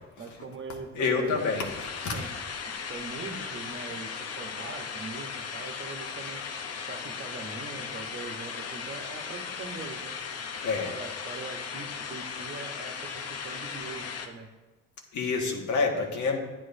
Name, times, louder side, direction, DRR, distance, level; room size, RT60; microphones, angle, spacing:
voice 1, 0.2-1.5 2.1-2.3 2.9-6.4 6.9-10.1 10.8-14.5, right 4 dB, 40° right, 3 dB, 1.2 m, -41 dB
voice 2, 0.9-2.2 10.6-10.9 15.1-16.4, left 4 dB, 75° left, 0 dB, 1.6 m, -28 dB
sound 1, 1.4-14.3, left 6 dB, 55° left, 0.9 m, -37 dB
9.9 x 9.2 x 2.7 m, 1.2 s
cardioid pair, 90°, 30 cm